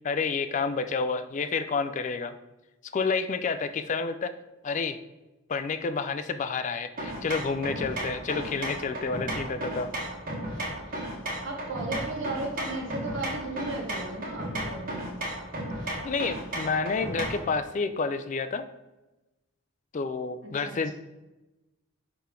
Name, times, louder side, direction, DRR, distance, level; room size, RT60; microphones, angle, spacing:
voice 1, 0.0-2.3 2.9-4.3 4.6-5.0 5.5-9.9 16.0-18.6 19.9-20.9, left 4 dB, 35° left, 10 dB, 0.3 m, -29 dB
sound 1, 7.0-17.5, right 1 dB, 40° right, 1.5 m, -34 dB
voice 2, 11.4-15.1 20.4-20.9, right 2 dB, 60° right, 0 dB, 1.6 m, -35 dB
5.8 x 5.6 x 3.7 m, 1.1 s
head